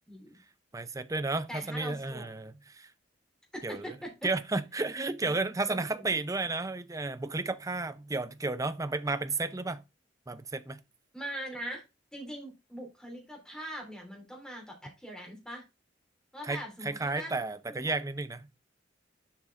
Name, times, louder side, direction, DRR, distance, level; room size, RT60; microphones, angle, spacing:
voice 1, 0.1-0.4 1.5-2.3 3.5-4.3 5.2-5.3 5.7-6.0 11.1-11.8 12.1-15.6 16.3-17.3 17.7-17.8, equal, 5° left, 3.2 m, -42 dB
voice 2, 0.7-2.9 3.6-3.9 4.2-9.8 10.3-10.8 16.4-18.5, right 3 dB, 20° right, 0.6 m, -32 dB
7.3 x 5.3 x 3.6 m
head